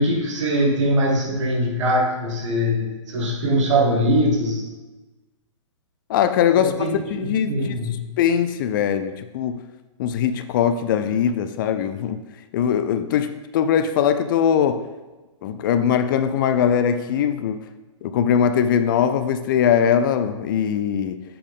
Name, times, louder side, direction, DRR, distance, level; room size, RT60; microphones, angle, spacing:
voice 1, 0.0-4.7 6.6-8.1, equal, 65° right, -1 dB, 1.8 m, -22 dB
voice 2, 6.1-7.7 8.2-9.6 10.0-12.2 12.5-14.9 15.4-17.6 18.0-21.2, left 8 dB, 40° left, 10 dB, 0.4 m, -21 dB
7.5 x 4.4 x 3.6 m, 1.2 s
hypercardioid pair, 135°, 17 cm